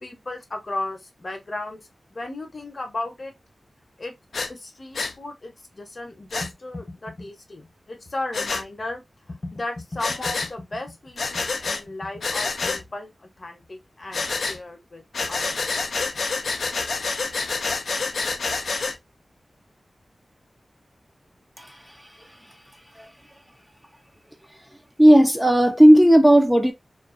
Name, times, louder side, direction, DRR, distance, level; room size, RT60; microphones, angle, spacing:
voice 1, 0.0-1.8 2.1-3.3 4.0-4.1 4.5-9.0 9.3-15.7, left 2 dB, 50° left, 0.7 m, -35 dB
Breathing, 4.3-4.5 5.0-5.1 6.3-6.5 8.3-8.6 10.0-10.5 11.2-11.8 12.2-12.8 14.1-14.6 15.1-19.0, left 4 dB, 85° left, 0.4 m, -27 dB
voice 2, 21.6-22.6 22.9-23.1 24.5-24.6 25.0-26.7, equal, 5° right, 0.4 m, -16 dB
2.4 x 2.2 x 2.4 m
cardioid pair, 55°, 0 cm